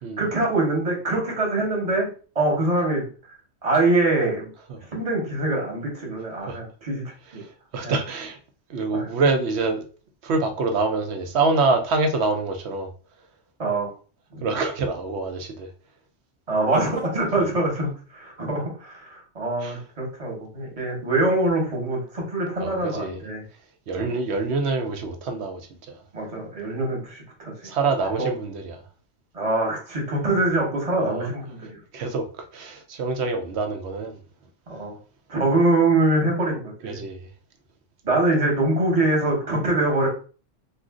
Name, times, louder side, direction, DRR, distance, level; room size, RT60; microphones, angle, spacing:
voice 1, 0.2-2.1 2.3-3.0 3.6-4.5 4.8-7.0 7.3-7.4 7.8-7.9 8.9-9.1 13.6-13.9 14.3-14.4 16.5-23.4 24.0-24.1 26.1-27.5 28.2-28.3 29.3-31.8 34.7-35.0 35.3-37.0 38.0-40.1, right 2 dB, 30° right, 1.1 m, -24 dB
voice 2, 7.4-8.4 8.7-9.9 10.2-12.9 14.4-15.7 19.6-19.8 22.6-23.2 23.9-26.0 27.6-28.8 31.0-31.3 31.9-34.2 36.8-37.3, right 3 dB, 75° right, 0.9 m, -26 dB
2.5 x 2.4 x 3.6 m
omnidirectional pair, 1.2 m